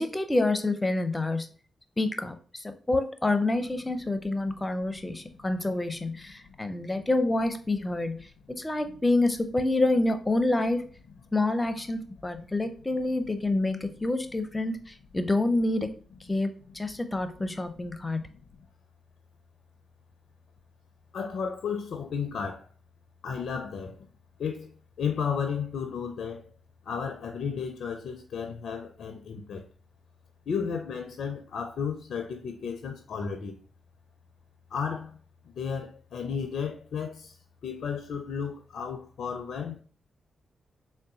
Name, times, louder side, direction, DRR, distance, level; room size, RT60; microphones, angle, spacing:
voice 1, 0.0-1.5 2.0-10.8 11.3-15.9 16.3-18.2, left 2 dB, 25° left, 0.6 m, -27 dB
voice 2, 18.0-18.4 21.1-22.7 23.2-24.1 24.4-24.7 25.0-26.5 26.8-29.6 30.5-33.6 34.7-35.2 35.5-37.3 37.6-39.8, left 6 dB, 70° left, 0.4 m, -33 dB
3.8 x 2.2 x 3.7 m
supercardioid pair, 40°, 0 cm